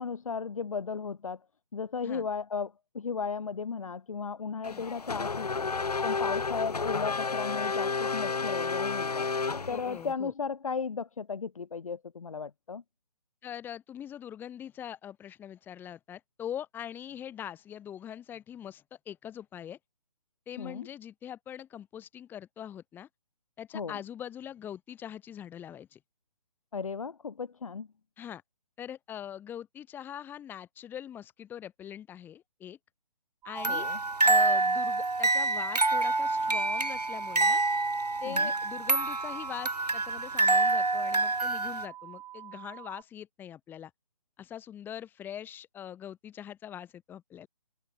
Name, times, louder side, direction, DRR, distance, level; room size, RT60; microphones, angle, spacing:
voice 1, 0.0-1.4 1.7-5.7 6.0-9.3 9.7-12.8 20.6-20.9 23.7-24.0 26.7-27.9 33.7-34.0 38.3-38.5, left 5 dB, 60° left, 2.3 m, -35 dB
Race car auto racing / Accelerating revving vroom, 4.6-10.1, left 4 dB, 80° left, 0.8 m, -31 dB
voice 2, 9.7-10.3 13.4-19.8 20.5-23.1 23.6-26.0 28.2-28.4 28.8-32.8 33.4-33.9 34.2-37.6 38.2-43.9 44.4-47.5, left 10 dB, 10° left, 2.1 m, -42 dB
sound 1, 33.4-43.0, right 13 dB, 10° right, 1.9 m, -47 dB
sound 2, 33.6-41.8, right 2 dB, 85° right, 1.5 m, -27 dB
figure-of-eight pair, 140°, 20 cm